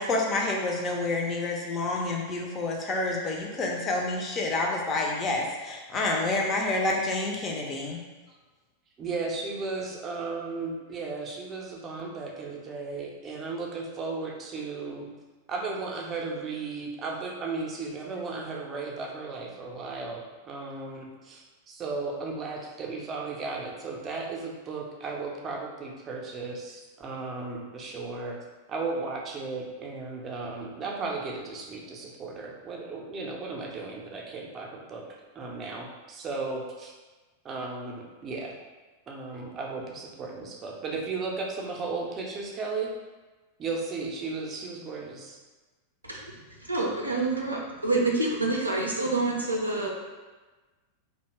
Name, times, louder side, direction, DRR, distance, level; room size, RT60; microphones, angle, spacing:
voice 1, 0.0-8.0, left 2 dB, 25° left, -1 dB, 0.5 m, -28 dB
voice 2, 9.0-15.1 15.5-28.4 28.7-35.0 35.4-36.9 37.4-38.5 39.1-42.9 43.6-45.4, right 3 dB, 25° right, -1 dB, 0.5 m, -35 dB
voice 3, 46.7-49.9, right 2 dB, 85° right, -2 dB, 0.5 m, -27 dB
2.7 x 2.1 x 3.0 m, 1.2 s
figure-of-eight pair, 90°, 0 cm